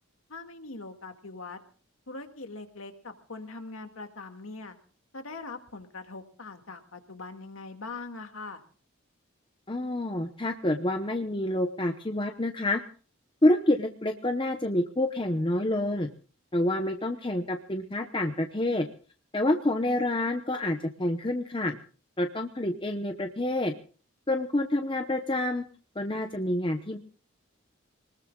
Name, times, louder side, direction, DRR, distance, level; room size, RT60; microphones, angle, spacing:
voice 1, 0.3-1.6 2.1-4.8 5.1-8.6, left 3 dB, 80° left, 6 dB, 2.1 m, -42 dB
voice 2, 9.7-12.8 13.4-16.1 16.5-18.9 19.3-21.8 22.2-23.7 24.3-25.6 26.0-27.0, left 1 dB, 25° left, 5 dB, 0.9 m, -28 dB
25.5 x 20.0 x 2.4 m, 0.39 s
head